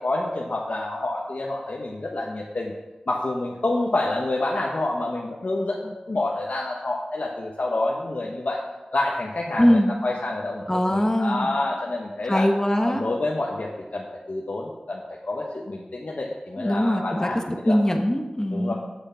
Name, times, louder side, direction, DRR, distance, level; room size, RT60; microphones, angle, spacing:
voice 1, 0.0-2.7 3.1-8.6 8.9-12.5 12.8-17.8 18.5-18.7, left 2 dB, 75° left, -2 dB, 1.0 m, -28 dB
voice 2, 9.6-9.9 10.7-11.5 12.3-13.0 16.6-18.7, equal, 20° left, 4 dB, 1.3 m, -22 dB
8.1 x 7.0 x 5.6 m, 1.1 s
wide cardioid pair, 55°, 3 cm